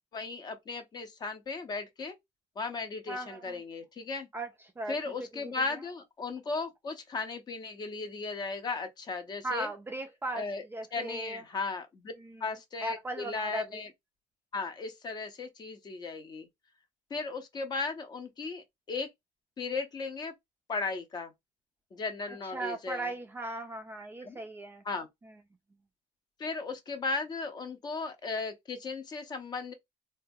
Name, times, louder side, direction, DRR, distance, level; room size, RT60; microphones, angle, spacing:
voice 1, 0.1-2.2 2.6-4.3 4.9-9.7 10.3-10.6 10.9-12.1 12.4-13.9 14.5-16.5 17.1-19.1 19.6-20.3 20.7-21.3 21.9-23.1 24.2-24.4 24.8-25.1 26.4-29.7, left 4 dB, 30° left, 0.6 m, -36 dB
voice 2, 3.1-3.6 4.3-5.9 9.4-11.5 12.2-13.9 22.3-24.8 25.2-25.4, right 2 dB, 15° right, 0.3 m, -38 dB
3.8 x 2.2 x 2.6 m
cardioid pair, 170°, 14 cm